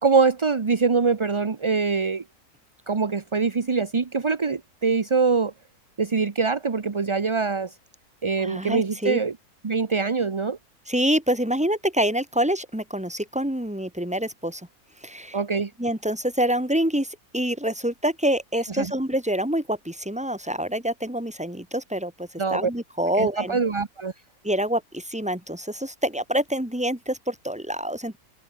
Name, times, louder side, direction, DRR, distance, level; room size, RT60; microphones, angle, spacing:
voice 1, 0.0-2.2 2.9-5.5 6.0-7.7 8.2-9.4 9.6-10.6 15.3-15.7 18.8-18.9 22.4-22.7 23.2-24.1, right 4 dB, 30° right, 0.6 m, -23 dB
voice 2, 8.4-9.2 10.9-14.6 15.0-15.4 15.8-23.6 24.4-28.2, right 1 dB, 5° right, 2.5 m, -26 dB
omnidirectional pair, 1.6 m